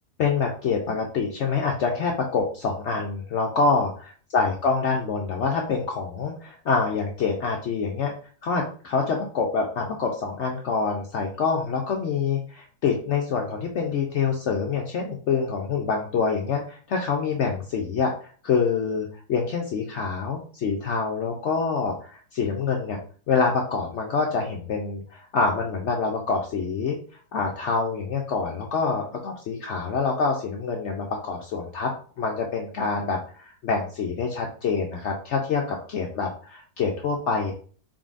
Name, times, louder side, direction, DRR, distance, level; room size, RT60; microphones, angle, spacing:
voice 1, 0.2-3.9 4.3-8.1 8.4-23.0 23.3-27.0 27.3-31.9 32.2-37.5, left 5 dB, 80° left, 1 dB, 0.6 m, -26 dB
3.9 x 3.8 x 2.5 m, 0.43 s
omnidirectional pair, 1.9 m